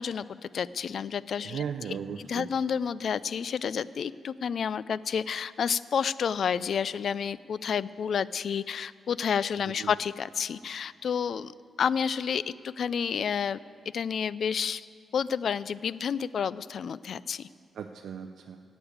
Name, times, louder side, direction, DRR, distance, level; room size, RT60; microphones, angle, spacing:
voice 1, 0.0-1.6 2.2-11.5 11.8-13.6 13.9-14.9 15.1-17.5, left 7 dB, 65° left, 18 dB, 0.3 m, -30 dB
voice 2, 1.4-2.5 9.8-9.9 17.7-18.6, right 7 dB, 80° right, 6 dB, 0.5 m, -36 dB
11.5 x 8.0 x 8.7 m, 2.1 s
cardioid pair, 95°, 0 cm